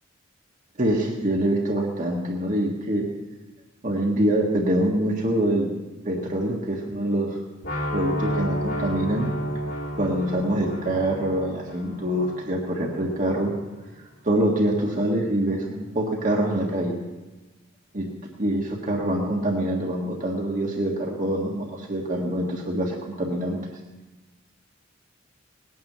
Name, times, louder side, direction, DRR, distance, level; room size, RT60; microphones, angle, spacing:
voice 1, 0.8-3.1 3.8-5.7 6.0-7.4 7.9-9.3 10.0-13.5 14.2-16.9 17.9-18.1 18.4-23.6, right 1 dB, 40° right, -1 dB, 1.7 m, -25 dB
sound 1, 7.6-13.6, equal, 75° left, 2.6 m, -31 dB
19.5 x 9.5 x 6.8 m, 1.1 s
head